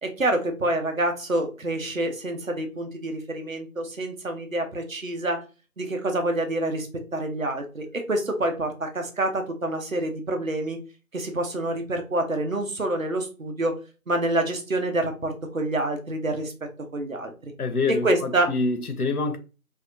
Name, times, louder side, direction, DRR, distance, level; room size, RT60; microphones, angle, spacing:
voice 1, 0.0-5.4 5.8-10.8 11.1-13.8 14.1-16.5 16.9-17.5 18.0-18.5, right 1 dB, 65° right, 0.7 m, -27 dB
voice 2, 17.6-19.4, left 3 dB, 90° left, 0.6 m, -26 dB
2.7 x 2.2 x 2.5 m
figure-of-eight pair, 180°, 43 cm